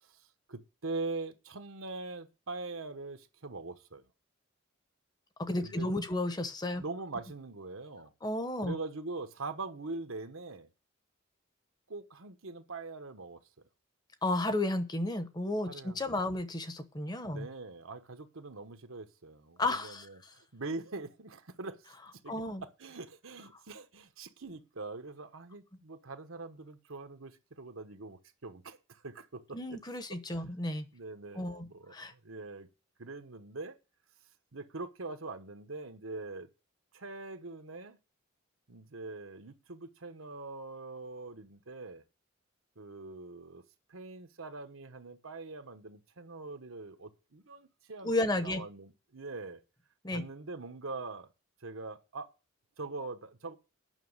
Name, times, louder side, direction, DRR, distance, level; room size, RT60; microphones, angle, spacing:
voice 1, 0.0-4.1 5.6-5.9 6.8-8.1 8.6-10.7 11.9-13.4 15.7-16.3 17.2-29.8 30.1-30.4 30.9-32.7 33.0-33.8 34.5-36.5 36.9-38.0 38.7-42.0 42.8-43.6 43.9-49.6 50.1-51.3 51.6-52.3 52.8-53.5, right 3 dB, 85° right, 1.2 m, -43 dB
voice 2, 5.4-6.8 8.2-8.7 14.2-17.5 19.6-20.0 22.3-22.6 29.5-30.9 31.3-32.1 48.0-48.6 50.0-50.2, left 2 dB, 20° left, 0.9 m, -33 dB
9.4 x 6.0 x 7.9 m
head